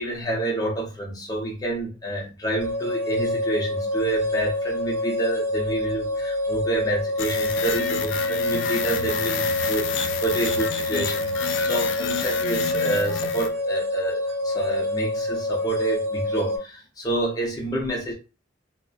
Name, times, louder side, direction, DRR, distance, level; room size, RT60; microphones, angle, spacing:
voice 1, 0.0-18.1, right 2 dB, 20° left, -3 dB, 0.6 m, -28 dB
sound 1, 2.6-16.6, left 1 dB, 55° right, 0.9 m, -27 dB
sound 2, 7.2-13.5, left 7 dB, 70° left, 0.3 m, -30 dB
2.5 x 2.1 x 2.3 m, 0.31 s
head